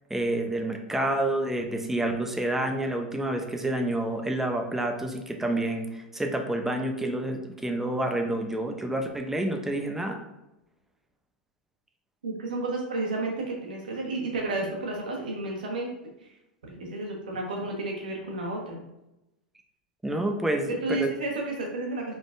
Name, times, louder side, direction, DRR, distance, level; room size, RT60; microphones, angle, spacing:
voice 1, 0.1-10.2 20.0-21.1, right 1 dB, 5° right, 4 dB, 0.6 m, -28 dB
voice 2, 12.2-15.9 16.8-18.8 20.8-22.1, right 2 dB, 75° right, -1 dB, 1.3 m, -31 dB
5.0 x 3.8 x 2.5 m, 0.91 s
hypercardioid pair, 95°, 5 cm